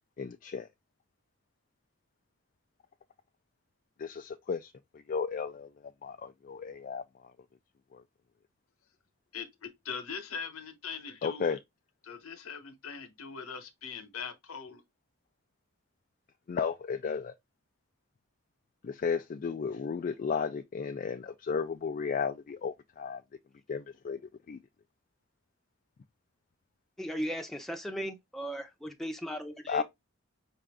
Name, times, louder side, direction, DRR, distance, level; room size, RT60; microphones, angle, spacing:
voice 1, 0.2-0.7 4.0-7.3 7.9-8.0 11.2-11.6 16.5-17.3 18.8-23.2 23.7-24.2 24.5-24.6 29.7-29.8, left 6 dB, 40° left, 0.3 m, -34 dB
voice 2, 9.3-11.5 12.0-14.8, left 6 dB, 85° left, 1.0 m, -41 dB
voice 3, 27.0-29.8, equal, ahead, 0.7 m, -37 dB
5.6 x 2.5 x 3.4 m
head